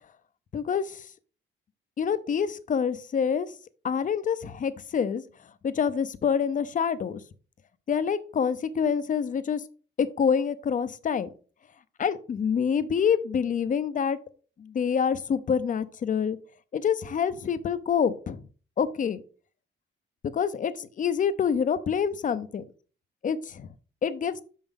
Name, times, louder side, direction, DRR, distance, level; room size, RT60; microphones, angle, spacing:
voice 1, 0.5-1.0 2.0-3.5 3.8-5.2 5.6-7.2 7.9-9.6 10.0-11.3 12.0-14.2 14.6-16.4 16.7-18.4 18.8-19.2 20.3-22.6 23.2-23.7 24.0-24.4, left 7 dB, 40° left, 13 dB, 0.6 m, -26 dB
6.0 x 5.4 x 3.7 m, 0.39 s
cardioid pair, 90°, 20 cm